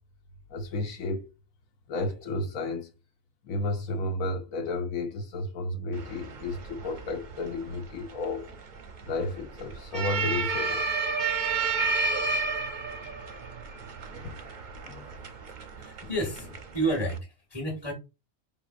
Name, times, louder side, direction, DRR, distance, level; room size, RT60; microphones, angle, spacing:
voice 1, 0.5-1.2 1.9-2.9 3.4-8.5 9.1-10.9 11.6-11.8 13.0-13.2 14.1-14.3 14.8-15.1, left 2 dB, 85° left, 1.1 m, -32 dB
sound 1, 5.9-17.2, right 4 dB, 50° right, 0.6 m, -32 dB
voice 2, 15.8-17.9, right 1 dB, 20° left, 1.0 m, -31 dB
4.9 x 3.6 x 2.5 m
omnidirectional pair, 1.4 m